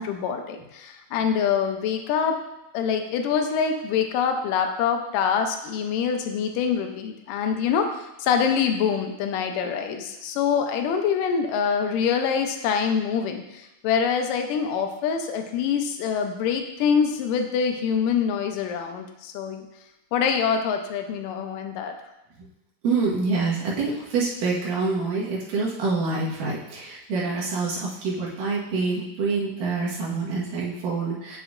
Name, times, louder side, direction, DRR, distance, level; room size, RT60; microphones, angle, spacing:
voice 1, 0.0-2.3 2.7-19.6 20.1-21.9, left 7 dB, 90° left, 5 dB, 2.3 m, -25 dB
voice 2, 22.8-31.4, right 4 dB, 85° right, -5 dB, 3.1 m, -26 dB
8.0 x 6.9 x 2.5 m, 0.91 s
omnidirectional pair, 3.7 m